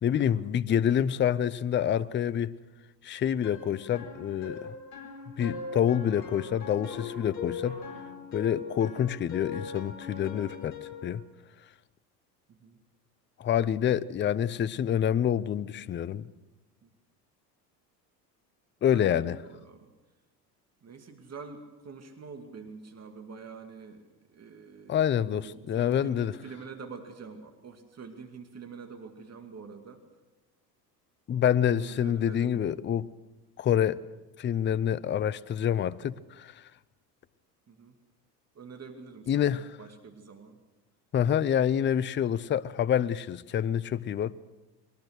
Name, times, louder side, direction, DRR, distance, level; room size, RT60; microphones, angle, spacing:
voice 1, 0.0-2.5 3.0-4.7 5.4-7.8 8.3-10.7 11.0-11.2 13.4-16.3 18.8-19.4 24.9-26.3 31.3-33.1 33.6-34.0 34.4-36.5 39.3-39.8 41.1-44.3, left 9 dB, 25° left, 0.6 m, -27 dB
sound 1, 3.4-11.1, left 5 dB, 75° left, 4.7 m, -40 dB
voice 2, 12.5-12.8 14.2-14.3 16.8-16.9 18.9-19.9 20.8-30.0 31.7-32.7 37.7-37.9 38.5-40.6, right 5 dB, 30° right, 2.4 m, -46 dB
22.5 x 19.0 x 6.5 m
hypercardioid pair, 75°, 50 cm